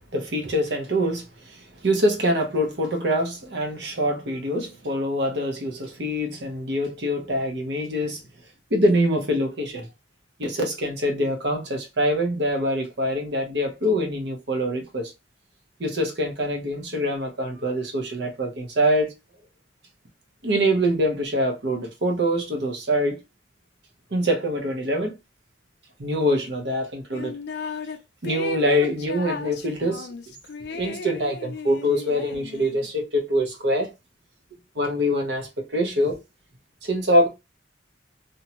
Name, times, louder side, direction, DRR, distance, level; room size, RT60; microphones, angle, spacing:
voice 1, 0.0-8.2 8.7-9.9 10.4-15.1 15.8-19.1 20.4-23.2 24.1-25.1 26.0-27.4 28.2-30.3 30.7-33.9 34.7-36.2 36.8-37.3, equal, 65° right, 0.8 m, -24 dB
sound 1, 27.1-28.0 28.2-32.9, left 5 dB, 60° left, 0.4 m, -35 dB
2.6 x 2.2 x 2.8 m
head